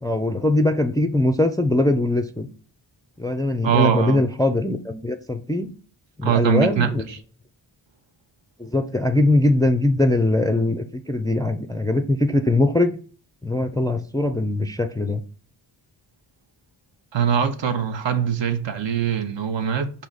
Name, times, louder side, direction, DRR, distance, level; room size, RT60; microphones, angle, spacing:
voice 1, 0.0-2.5 3.2-5.7 6.2-7.0 8.6-12.9 13.4-15.2, left 1 dB, 10° left, 0.3 m, -21 dB
voice 2, 3.6-4.2 6.2-6.9 17.1-19.9, right 8 dB, 65° right, 0.8 m, -22 dB
4.9 x 2.8 x 3.9 m
wide cardioid pair, 80°, 48 cm